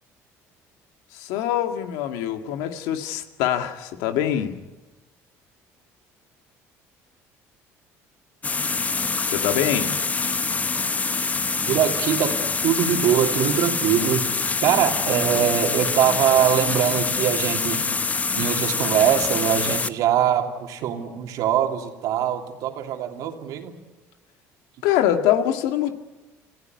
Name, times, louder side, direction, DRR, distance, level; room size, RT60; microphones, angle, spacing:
voice 1, 1.1-4.6 9.3-10.0 24.8-25.9, left 11 dB, 85° left, 7 dB, 1.9 m, -24 dB
sound 1, 8.4-19.9, left 4 dB, 25° left, 0.9 m, -25 dB
voice 2, 11.7-14.3 14.6-17.8 18.4-23.7, right 10 dB, 70° right, 4 dB, 3.0 m, -22 dB
26.5 x 15.0 x 9.5 m, 1.1 s
supercardioid pair, 95°, 6 cm